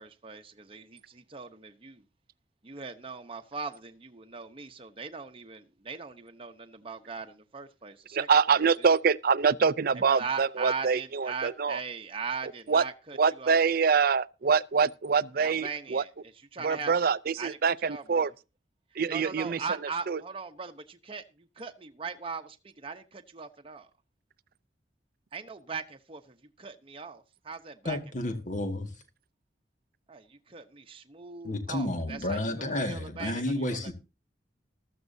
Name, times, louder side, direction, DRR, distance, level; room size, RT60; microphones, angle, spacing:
voice 1, 0.0-2.0 2.6-8.6 10.0-13.6 15.4-16.1 16.5-16.9 17.4-17.6 17.8-18.2 19.1-21.2 21.6-23.9 25.3-28.0 30.1-33.9, right 5 dB, 30° right, 0.9 m, -39 dB
voice 2, 8.1-11.8 12.7-12.8 13.2-16.0 16.6-18.3 19.0-19.6 20.1-20.2, right 5 dB, 55° right, 0.5 m, -25 dB
voice 3, 27.8-28.9 31.4-33.9, left 1 dB, 45° left, 1.9 m, -31 dB
14.5 x 13.5 x 2.7 m
head